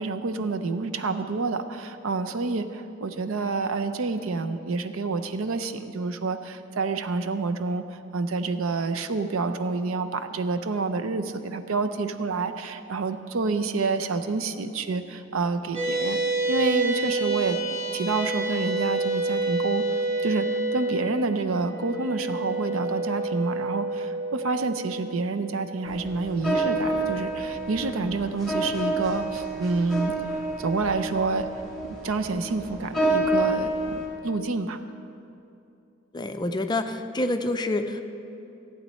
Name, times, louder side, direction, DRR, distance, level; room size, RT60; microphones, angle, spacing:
voice 1, 0.0-19.8 20.2-30.1 30.6-31.5 32.0-34.8, right 3 dB, 85° right, 9 dB, 0.6 m, -28 dB
sound 1, 15.7-28.4, right 2 dB, 30° right, 2.9 m, -29 dB
sound 2, 25.9-34.1, right 2 dB, ahead, 3.2 m, -28 dB
voice 2, 36.1-38.0, left 2 dB, 20° left, 7 dB, 0.5 m, -27 dB
15.0 x 8.7 x 4.2 m, 2.8 s
head